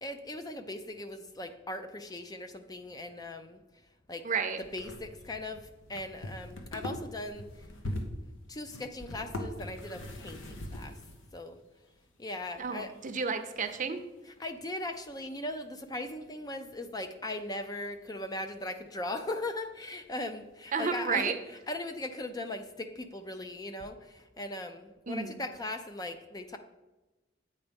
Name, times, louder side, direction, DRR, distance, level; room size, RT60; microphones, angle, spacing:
voice 1, 0.0-3.6 4.1-4.2 4.7-7.7 8.5-11.0 11.3-11.6 12.2-12.9 14.3-21.3 21.7-26.6, left 1 dB, 20° left, 7 dB, 0.4 m, -39 dB
voice 2, 4.2-4.6 12.6-14.0 20.7-21.4 25.1-25.4, right 5 dB, 40° right, 7 dB, 0.6 m, -31 dB
sound 1, 4.6-11.9 12.2-14.0 14.4-14.5 18.1-18.2 18.4-18.5 21.0-21.1, left 1 dB, 80° left, 1.1 m, -42 dB
8.3 x 4.3 x 5.2 m, 1.1 s
head